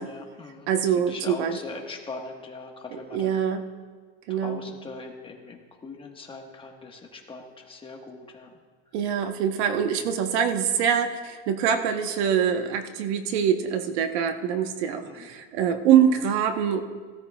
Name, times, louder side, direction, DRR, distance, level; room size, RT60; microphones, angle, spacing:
voice 1, 0.0-3.4 4.3-8.5 15.0-15.3, left 3 dB, 15° left, 1 dB, 1.3 m, -41 dB
voice 2, 0.7-1.6 2.9-3.6 4.3-4.6 8.9-16.8, right 8 dB, 75° right, 7 dB, 1.1 m, -24 dB
17.0 x 13.5 x 2.3 m, 1.5 s
supercardioid pair, 140°, 33 cm